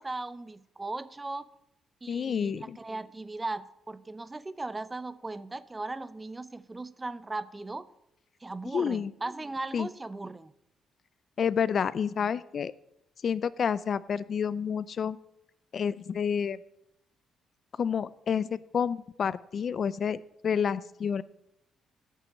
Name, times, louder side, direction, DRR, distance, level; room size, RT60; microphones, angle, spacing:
voice 1, 0.0-1.5 2.0-7.9 8.4-10.5, right 2 dB, 20° right, 0.6 m, -38 dB
voice 2, 2.1-2.8 8.7-9.1 9.7-9.9 11.4-12.7 13.2-15.2 15.7-16.6 17.8-21.2, left 7 dB, 50° left, 0.4 m, -29 dB
8.4 x 6.9 x 8.6 m
cardioid pair, 90°, 0 cm